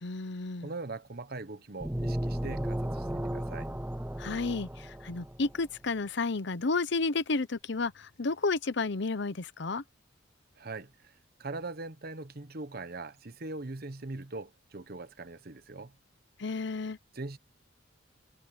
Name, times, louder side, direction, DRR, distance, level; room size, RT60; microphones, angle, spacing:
voice 1, 0.0-0.7 4.2-9.8 16.4-17.0, left 3 dB, 60° left, 0.9 m, -31 dB
voice 2, 0.6-3.7 10.6-11.1 11.4-15.9 17.1-17.4, right 3 dB, 50° right, 1.2 m, -41 dB
sound 1, 1.8-5.5, right 1 dB, 10° right, 0.7 m, -34 dB
head